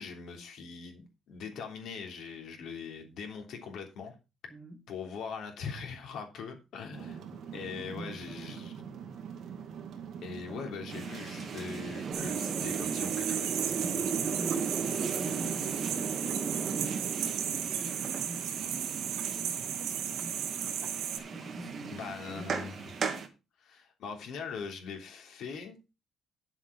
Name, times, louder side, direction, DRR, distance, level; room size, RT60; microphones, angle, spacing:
voice 1, 0.0-4.1 4.9-7.2 7.5-8.7 10.2-14.0 21.9-23.1 23.6-25.8, left 6 dB, 65° left, 3.3 m, -42 dB
voice 2, 4.5-4.8 7.3-8.6 10.5-10.6 13.8-20.8 21.3-22.7, right 1 dB, 10° right, 1.9 m, -46 dB
sound 1, 6.9-22.1, right 7 dB, 50° right, 2.1 m, -44 dB
sound 2, 10.9-23.3, right 5 dB, 35° right, 1.7 m, -37 dB
sound 3, 12.1-21.2, right 9 dB, 85° right, 2.5 m, -35 dB
10.0 x 7.6 x 5.2 m
cardioid pair, 180°, 0 cm